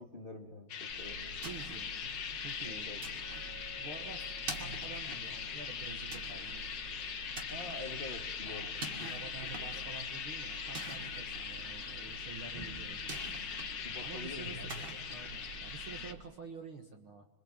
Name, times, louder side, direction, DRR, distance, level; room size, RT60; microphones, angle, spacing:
voice 1, 0.0-1.4 2.6-3.0 7.5-8.7 9.0-9.8 13.8-15.0, left 2 dB, 25° left, 4 dB, 1.1 m, -47 dB
sound 1, 0.7-16.1, left 7 dB, 90° left, 0.9 m, -41 dB
sound 2, 0.9-16.2, right 4 dB, 30° right, 2.8 m, -47 dB
voice 2, 1.4-1.9 2.4-3.4 3.8-6.6 8.4-13.2 14.0-14.7 15.1-17.2, right 4 dB, 50° right, 5 dB, 1.7 m, -49 dB
Glass, 3.2-7.3, left 5 dB, 5° left, 2.0 m, -60 dB
26.0 x 24.5 x 8.9 m, 0.92 s
omnidirectional pair, 4.4 m